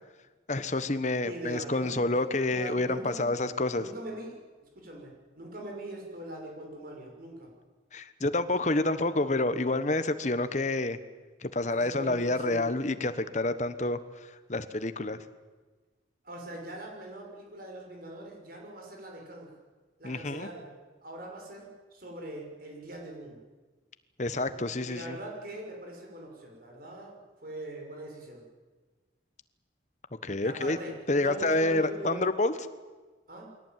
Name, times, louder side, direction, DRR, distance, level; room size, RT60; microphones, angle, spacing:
voice 1, 0.5-3.8 7.9-11.0 11.4-14.0 14.5-15.2 20.0-20.5 24.2-25.2 30.2-30.8 31.1-32.5, left 2 dB, 40° left, 11 dB, 1.2 m, -28 dB
voice 2, 1.2-3.3 3.8-4.4 4.7-7.5 11.7-12.7 16.2-19.5 20.0-20.7 21.0-23.4 24.8-28.4 30.4-30.9 31.2-32.3 33.3-33.5, right 1 dB, 50° right, 0 dB, 6.3 m, -42 dB
23.5 x 17.5 x 9.3 m, 1.3 s
head